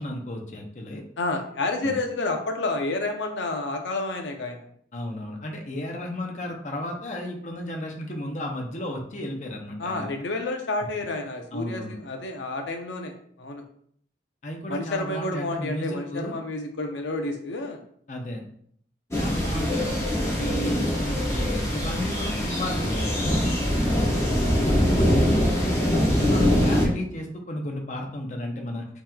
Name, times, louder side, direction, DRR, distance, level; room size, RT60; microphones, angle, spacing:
voice 1, 0.0-1.0 1.8-2.0 4.9-10.1 11.5-11.9 14.4-16.4 18.1-18.4 19.2-23.5 24.6-28.9, left 1 dB, 40° left, 1 dB, 0.6 m, -33 dB
voice 2, 1.2-4.6 9.8-13.1 13.4-13.6 14.7-17.8 24.1-24.5, left 2 dB, 85° left, 4 dB, 0.6 m, -30 dB
sound 1, 19.1-26.9, equal, 15° left, 0.9 m, -23 dB
5.4 x 3.0 x 2.2 m, 0.63 s
head